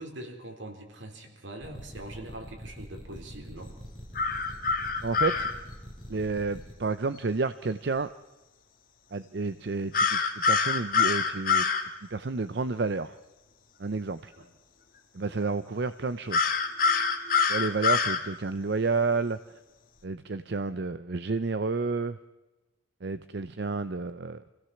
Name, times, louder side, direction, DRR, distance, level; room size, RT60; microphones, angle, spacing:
voice 1, 0.0-3.7 14.4-14.5, right 1 dB, 85° right, 3 dB, 4.1 m, -43 dB
sound 1, 1.6-6.7, equal, 5° left, 5.2 m, -44 dB
sound 2, 4.2-5.5 9.9-11.8 16.3-18.2, left 5 dB, 50° left, 1.8 m, -25 dB
voice 2, 5.0-5.5 6.1-8.1 9.1-11.6 12.1-13.2 13.8-14.3 15.1-16.5 17.5-19.4 20.0-22.2 23.0-24.4, right 4 dB, 60° right, 13 dB, 0.6 m, -30 dB
25.5 x 16.5 x 7.1 m, 1.1 s
head